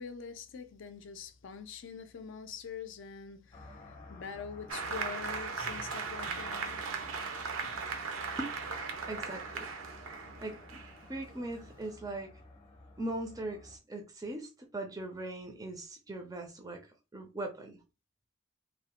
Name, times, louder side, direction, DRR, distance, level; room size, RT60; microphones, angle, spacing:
voice 1, 0.0-6.9, left 6 dB, 65° left, 0.4 m, -44 dB
sound 1, 3.5-13.8, left 2 dB, 30° left, 0.7 m, -52 dB
Applause, 4.7-11.9, right 5 dB, 75° right, 0.5 m, -38 dB
voice 2, 9.1-9.7 10.4-10.8 11.1-12.3 13.0-17.8, right 1 dB, 15° right, 0.4 m, -40 dB
3.0 x 2.0 x 2.9 m
head